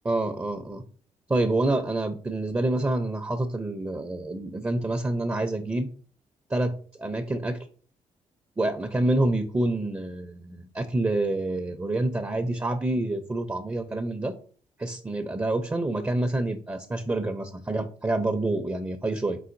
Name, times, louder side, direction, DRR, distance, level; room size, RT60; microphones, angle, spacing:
voice 1, 0.0-0.8 1.3-5.9 6.5-7.7 8.6-14.3 14.8-19.4, right 2 dB, 15° right, 7 dB, 0.5 m, -27 dB
4.0 x 3.9 x 2.6 m, 0.43 s
supercardioid pair, 55°, 13 cm